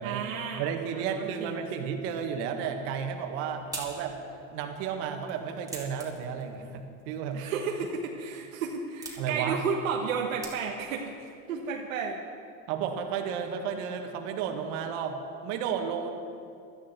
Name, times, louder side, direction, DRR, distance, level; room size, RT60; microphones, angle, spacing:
voice 1, 0.0-1.9 7.3-12.2, right 5 dB, 80° right, 1 dB, 1.4 m, -33 dB
voice 2, 0.6-4.2 4.5-7.4 9.2-9.6 12.7-16.1, right 7 dB, 60° right, 4 dB, 1.9 m, -33 dB
sound 1, 3.0-11.0, right 2 dB, 10° right, 2.8 m, -47 dB
16.5 x 13.0 x 4.5 m, 2.4 s
supercardioid pair, 115°, 40 cm